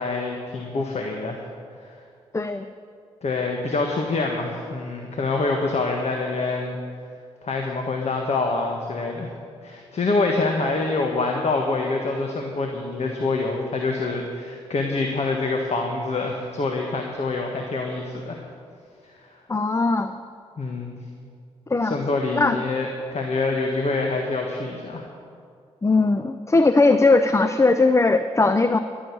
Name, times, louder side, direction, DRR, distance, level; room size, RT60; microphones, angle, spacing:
voice 1, 0.0-1.4 1.8-1.9 3.2-6.8 7.4-9.3 9.6-18.4 19.3-19.4 20.6-21.0 21.9-25.0, left 3 dB, 50° left, 2 dB, 1.5 m, -26 dB
voice 2, 2.3-2.7 19.5-20.2 21.7-22.0 22.3-22.6 25.8-28.8, left 3 dB, 20° left, 10 dB, 0.6 m, -19 dB
12.5 x 6.5 x 9.5 m, 2.3 s
hypercardioid pair, 40°, 14 cm